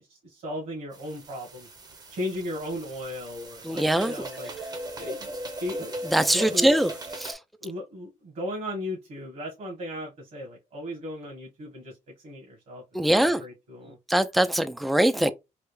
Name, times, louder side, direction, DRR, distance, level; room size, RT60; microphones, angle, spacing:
voice 1, 0.0-1.7 2.1-4.5 5.0-5.9 6.3-6.7 7.6-12.0 12.2-14.0, left 1 dB, 65° right, 1.3 m, -36 dB
sound 1, 0.9-7.3, right 1 dB, 30° right, 0.7 m, -38 dB
voice 2, 3.6-4.1 6.1-6.9 7.2-7.4 12.9-13.4 14.1-15.3, right 1 dB, ahead, 0.3 m, -22 dB
3.3 x 2.3 x 3.1 m
cardioid pair, 115°, 13 cm